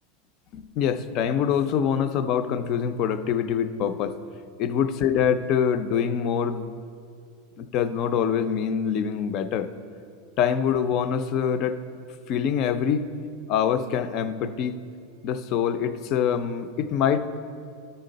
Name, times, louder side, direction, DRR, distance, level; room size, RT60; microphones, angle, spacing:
voice 1, 0.5-4.2 4.6-6.7 7.6-9.7 10.4-11.8 12.3-13.1 13.5-14.8 15.2-17.3, left 8 dB, 35° left, 11 dB, 0.4 m, -25 dB
12.0 x 6.6 x 3.9 m, 2.3 s
supercardioid pair, 170°, 0 cm